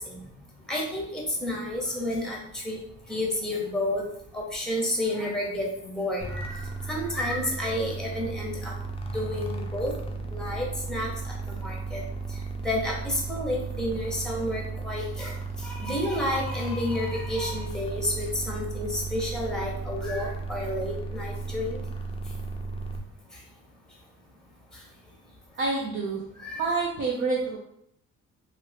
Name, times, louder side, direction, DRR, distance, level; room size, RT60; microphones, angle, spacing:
voice 1, 0.7-2.8 3.1-4.0 4.3-8.7 9.1-9.9 10.3-11.1 11.5-12.0 12.6-21.8 26.4-26.6, left 1 dB, ahead, -2 dB, 1.0 m, -30 dB
sound 1, 6.2-23.0, right 3 dB, 20° left, 0.5 m, -35 dB
voice 2, 25.6-26.2 26.6-27.6, right 3 dB, 45° right, -3 dB, 0.7 m, -27 dB
2.7 x 2.7 x 3.3 m, 0.74 s
cardioid pair, 90°, 30 cm